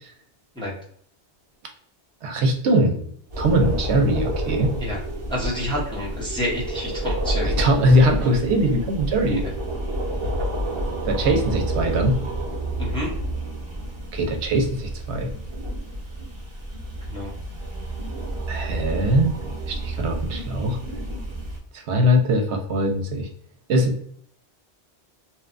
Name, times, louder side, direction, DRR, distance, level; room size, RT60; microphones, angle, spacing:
voice 1, 2.2-3.0 3.4-4.7 7.5-9.4 11.1-12.2 14.1-15.3 18.5-19.4 19.7-20.8 21.9-23.3 23.7-24.0, equal, 85° right, 4 dB, 0.9 m, -21 dB
sound 1, 3.3-21.6, right 1 dB, 30° right, 0.7 m, -29 dB
voice 2, 5.3-7.6 12.8-13.1 17.1-17.3, left 1 dB, 5° left, -5 dB, 0.6 m, -28 dB
2.8 x 2.2 x 2.4 m, 0.64 s
omnidirectional pair, 1.1 m